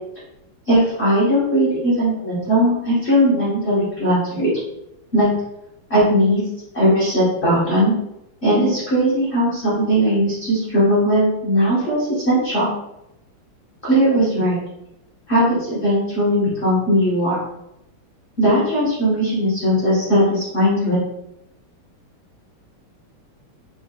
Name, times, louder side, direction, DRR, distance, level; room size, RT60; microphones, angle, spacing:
voice 1, 0.7-4.5 5.1-5.3 5.9-6.4 6.7-7.9 8.4-12.7 13.8-14.6 15.3-17.4 18.4-21.0, equal, 35° left, -9 dB, 1.2 m, -18 dB
4.4 x 3.4 x 2.3 m, 0.84 s
omnidirectional pair, 2.4 m